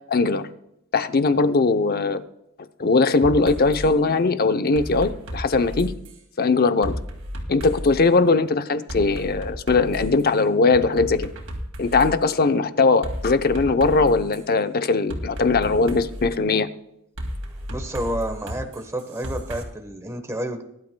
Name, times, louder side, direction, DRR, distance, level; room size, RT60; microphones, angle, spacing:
voice 1, 0.1-0.5 0.9-2.2 2.8-5.9 6.4-6.9 7.5-11.3 11.8-16.7, left 3 dB, 45° left, 10 dB, 0.7 m, -20 dB
sound 1, 3.2-3.9 4.7-6.2 6.8-8.0 8.9-10.2 10.7-12.1 13.0-14.4 15.1-16.3 17.2-19.6, equal, 80° right, 2.8 m, -33 dB
voice 2, 17.7-20.6, right 1 dB, 15° right, 6 dB, 1.1 m, -30 dB
20.5 x 12.0 x 2.2 m, 0.82 s
head